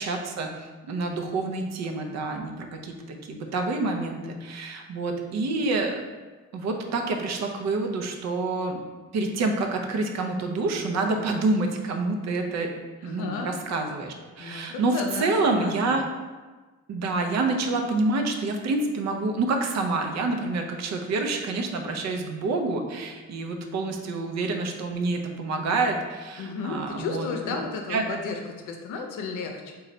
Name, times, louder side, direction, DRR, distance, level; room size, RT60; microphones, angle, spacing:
voice 1, 0.0-6.0 6.5-8.8 9.1-12.7 13.0-16.0 16.9-27.3 27.9-28.0, right 3 dB, 60° right, 3 dB, 0.6 m, -27 dB
voice 2, 13.0-13.5 14.4-15.9 26.4-29.7, left 4 dB, 85° left, 3 dB, 0.6 m, -33 dB
3.1 x 2.3 x 3.8 m, 1.3 s
cardioid pair, 90°, 30 cm